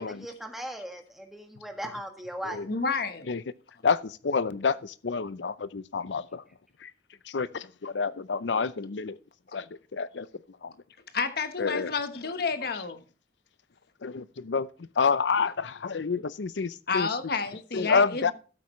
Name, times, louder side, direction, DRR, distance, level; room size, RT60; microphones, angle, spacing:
voice 1, 0.0-2.7 18.3-18.4, equal, ahead, 1.6 m, -38 dB
voice 2, 2.7-3.3 11.1-13.0 16.9-18.3, left 5 dB, 60° left, 1.1 m, -30 dB
voice 3, 3.8-6.4 6.8-6.9 7.3-9.2 9.5-9.7 9.9-10.3 10.6-10.7 11.6-11.9 12.7-12.8 14.0-17.3 17.7-18.3, left 5 dB, 90° left, 0.6 m, -28 dB
12.5 x 8.5 x 3.1 m
head